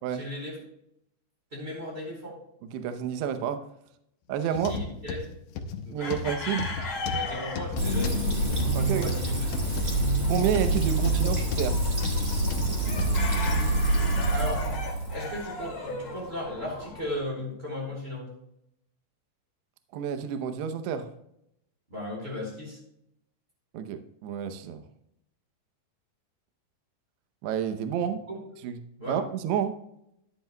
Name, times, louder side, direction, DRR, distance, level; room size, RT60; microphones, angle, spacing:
voice 1, 0.1-0.6 1.5-2.4 4.7-5.2 5.8-6.2 6.8-8.3 8.9-9.4 9.7-9.9 13.5-13.8 14.3-14.7 15.1-18.3 21.9-22.8 28.3-28.4 29.0-29.2, left 1 dB, 15° right, -1 dB, 3.7 m, -36 dB
voice 2, 2.7-3.6 4.3-4.7 5.9-6.7 8.7-9.1 10.3-11.8 19.9-21.1 23.7-24.8 27.4-28.2 28.6-28.8 29.1-29.7, right 8 dB, 80° right, 8 dB, 2.4 m, -29 dB
sound 1, 4.6-13.7 14.2-14.4 15.0-15.1, left 4 dB, 75° left, 2.9 m, -34 dB
sound 2, 6.0-17.2, left 3 dB, 40° left, 2.1 m, -38 dB
Fill (with liquid), 7.8-15.4, right 2 dB, 60° right, 0.8 m, -26 dB
14.0 x 10.5 x 2.2 m, 0.77 s
omnidirectional pair, 5.8 m